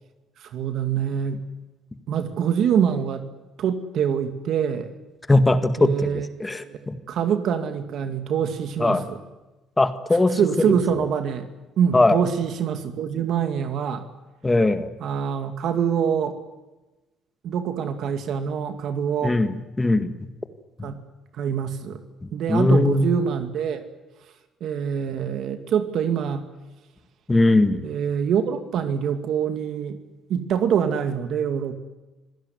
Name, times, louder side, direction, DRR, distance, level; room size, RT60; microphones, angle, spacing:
voice 1, 0.4-1.5 2.1-3.3 3.6-4.9 5.8-6.3 6.6-6.8 7.1-9.2 10.4-11.5 11.8-14.1 15.0-16.4 17.4-19.4 20.8-21.0 21.3-22.0 22.3-23.8 24.2-24.3 24.6-26.5 27.8-30.0 30.3-31.7, right 8 dB, 65° right, 8 dB, 2.4 m, -25 dB
voice 2, 5.3-6.1 6.4-6.9 8.8-9.0 9.8-10.4 10.9-11.0 11.9-12.2 14.4-14.9 19.2-20.1 20.8-20.9 22.2-23.1 27.3-27.9, left 2 dB, 15° left, 10 dB, 1.9 m, -20 dB
26.5 x 17.0 x 9.7 m, 1.1 s
cardioid pair, 120°, 0 cm